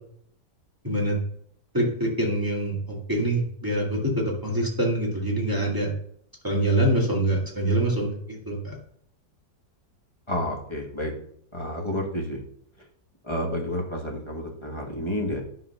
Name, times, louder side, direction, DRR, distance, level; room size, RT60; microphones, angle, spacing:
voice 1, 0.8-1.2 1.7-5.9 6.4-8.8, right 1 dB, 10° right, -3 dB, 2.0 m, -25 dB
voice 2, 10.3-11.1 11.5-12.4 13.2-15.4, left 1 dB, 20° left, 0 dB, 1.2 m, -30 dB
10.0 x 4.0 x 5.5 m, 0.67 s
omnidirectional pair, 1.8 m